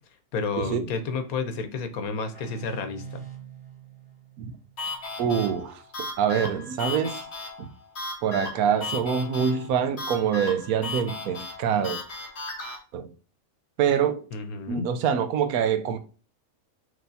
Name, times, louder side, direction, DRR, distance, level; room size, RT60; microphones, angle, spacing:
voice 1, 0.3-3.0 14.3-14.9, left 4 dB, 90° left, 1.2 m, -30 dB
sound 1, 2.3-5.8, right 7 dB, 5° left, 2.2 m, -45 dB
sound 2, 4.8-12.8, left 2 dB, 50° left, 1.4 m, -36 dB
voice 2, 5.2-5.8 6.2-7.2 7.6-7.7 8.2-12.0 12.9-13.1 13.8-14.2 14.7-16.0, right 7 dB, 85° right, 1.1 m, -25 dB
6.2 x 3.1 x 2.6 m
omnidirectional pair, 1.5 m